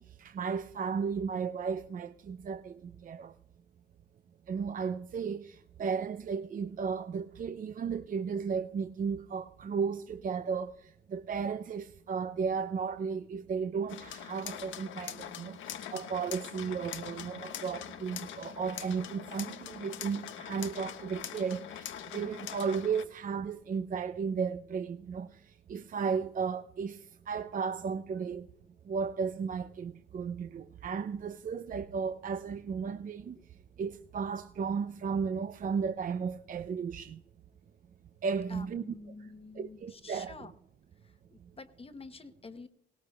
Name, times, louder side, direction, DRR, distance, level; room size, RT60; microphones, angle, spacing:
voice 1, 0.0-3.3 4.5-28.5 28.9-33.4 33.8-37.2 38.2-39.0 39.5-40.4, right 6 dB, 45° right, 0.5 m, -34 dB
sound 1, 13.9-23.0, left 10 dB, 75° left, 0.9 m, -43 dB
voice 2, 38.5-40.5 41.0-42.7, left 3 dB, 30° left, 0.9 m, -48 dB
19.5 x 17.0 x 2.3 m
cardioid pair, 90°, 20 cm